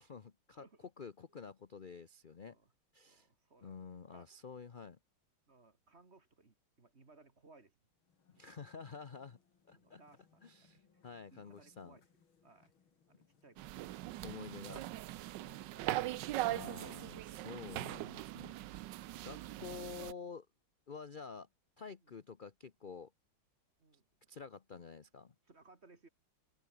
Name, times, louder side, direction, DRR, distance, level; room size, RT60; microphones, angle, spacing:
voice 1, 0.0-0.6 1.0-2.6 2.9-3.3 3.6-5.0 8.3-9.4 9.7-10.0 10.4-12.0 14.2-14.9 16.5-18.9 19.2-20.5 20.9-21.5 21.8-23.1 24.3-25.3, left 5 dB, 50° left, 0.6 m, -49 dB
voice 2, 0.6-0.9 2.4-2.7 3.0-3.8 4.1-4.3 5.5-7.7 8.3-8.4 9.7-11.0 11.3-12.1 12.4-12.7 13.1-13.8 15.2-17.4 22.0-22.2 23.8-24.3 25.4-26.1, right 3 dB, 30° right, 2.7 m, -63 dB
sound 1, 7.9-16.8, left 6 dB, 75° left, 3.2 m, -72 dB
sound 2, 13.6-20.1, right 15 dB, 70° right, 1.2 m, -41 dB
omnidirectional pair, 2.3 m